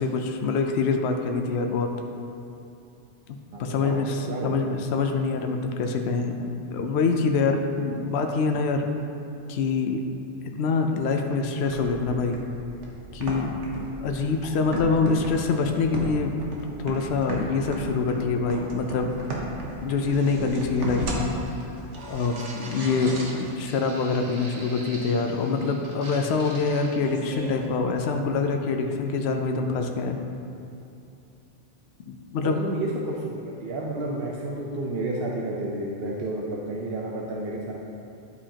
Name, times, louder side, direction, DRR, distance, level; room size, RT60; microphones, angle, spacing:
voice 1, 0.0-1.9 3.6-8.8 9.5-10.0 10.6-12.4 13.1-16.4 16.8-19.2 19.5-21.3 22.1-30.2 32.1-32.6, left 4 dB, 70° left, 4 dB, 0.8 m, -25 dB
voice 2, 3.5-4.0 4.3-4.7 32.4-37.7, right 2 dB, 60° right, -2 dB, 0.9 m, -31 dB
sound 1, 11.6-27.7, right 1 dB, 80° right, 1.3 m, -36 dB
11.0 x 5.0 x 2.8 m, 2.7 s
omnidirectional pair, 1.2 m